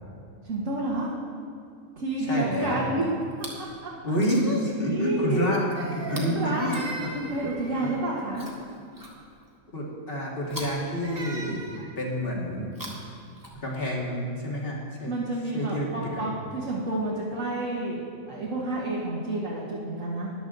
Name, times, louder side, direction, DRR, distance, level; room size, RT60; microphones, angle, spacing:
voice 1, 0.4-1.1 2.0-3.1 3.8-3.9 4.8-5.6 6.1-6.7 7.1-8.5 15.1-20.3, right 2 dB, 65° right, -5 dB, 1.8 m, -30 dB
voice 2, 2.3-2.9 4.0-7.1 7.4-7.5 7.8-8.0 9.7-11.7 12.0-12.7 13.6-15.1 15.5-16.3, equal, 40° left, -3 dB, 2.2 m, -28 dB
Chewing mastication, 3.2-3.7 4.1-4.7 6.0-7.4 8.3-9.6 10.4-11.7 12.6-14.0 14.9-15.0, equal, 15° right, 1.7 m, -44 dB
Crying sobbing, 5.8-8.3 10.5-11.9, right 2 dB, 35° right, 1.3 m, -40 dB
14.0 x 10.5 x 3.9 m, 2.5 s
omnidirectional pair, 1.5 m